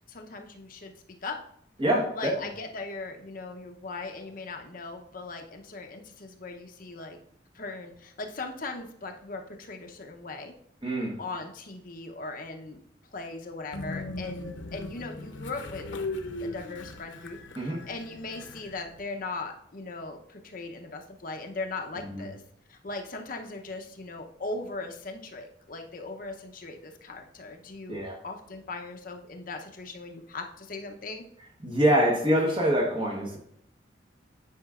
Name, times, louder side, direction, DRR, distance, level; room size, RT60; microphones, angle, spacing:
voice 1, 0.1-0.9 1.2-1.4 2.1-7.2 7.5-10.5 11.2-12.8 13.1-15.9 16.4-22.4 22.7-31.2, left 3 dB, 45° left, 3 dB, 0.7 m, -39 dB
voice 2, 1.8-2.3 10.8-11.1 17.6-17.8 22.0-22.2 27.9-28.2 31.6-33.4, equal, 25° right, -1 dB, 1.0 m, -25 dB
Train, 13.7-19.0, left 2 dB, 85° left, 0.7 m, -38 dB
9.4 x 5.0 x 2.4 m, 0.70 s
head